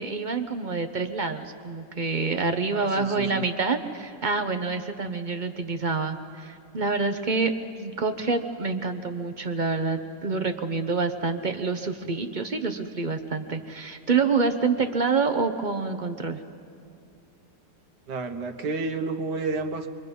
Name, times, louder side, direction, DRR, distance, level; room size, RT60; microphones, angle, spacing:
voice 1, 0.0-7.5 7.8-16.4, right 4 dB, 35° right, 7 dB, 0.8 m, -27 dB
voice 2, 2.7-3.4 18.1-19.9, right 3 dB, 75° right, 7 dB, 1.7 m, -31 dB
27.0 x 23.0 x 5.4 m, 2.5 s
omnidirectional pair, 1.8 m